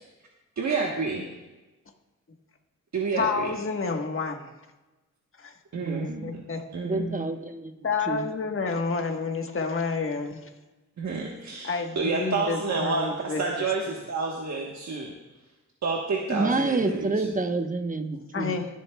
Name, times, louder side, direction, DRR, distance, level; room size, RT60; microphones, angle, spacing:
voice 1, 0.6-1.2 2.9-3.5 5.7-6.4 6.7-7.3 11.0-15.1 15.8-17.1, right 4 dB, 60° right, -1 dB, 1.3 m, -29 dB
voice 2, 3.2-4.5 5.4-5.5 6.2-6.6 7.8-10.4 11.6-13.4 18.3-18.7, left 4 dB, 40° left, 3 dB, 1.4 m, -29 dB
voice 3, 6.8-8.3 16.3-18.6, right 3 dB, 25° right, 6 dB, 1.0 m, -28 dB
24.5 x 8.2 x 2.3 m, 1.1 s
cardioid pair, 85°, 32 cm